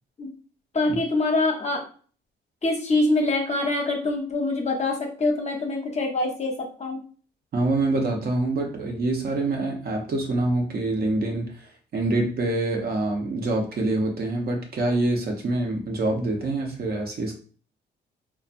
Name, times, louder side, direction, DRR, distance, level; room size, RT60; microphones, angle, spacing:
voice 1, 0.7-1.8 2.6-7.0, left 2 dB, 35° left, 2 dB, 0.8 m, -24 dB
voice 2, 7.5-17.3, right 2 dB, 50° right, 2 dB, 0.8 m, -25 dB
3.1 x 2.1 x 2.5 m, 0.40 s
cardioid pair, 90°, 20 cm